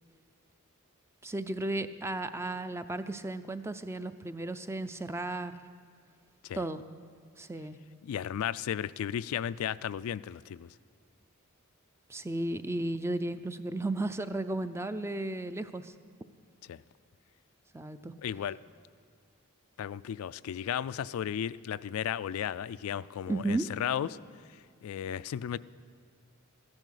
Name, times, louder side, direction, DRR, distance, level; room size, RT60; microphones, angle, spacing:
voice 1, 1.2-5.6 6.5-6.8 7.4-7.8 12.1-15.9 17.7-18.1 23.3-23.7, right 2 dB, 10° right, 11 dB, 0.4 m, -34 dB
voice 2, 8.0-10.7 16.6-16.8 18.2-18.6 19.8-24.2 24.8-25.6, left 9 dB, 75° left, 16 dB, 0.3 m, -34 dB
14.5 x 10.5 x 6.4 m, 2.1 s
head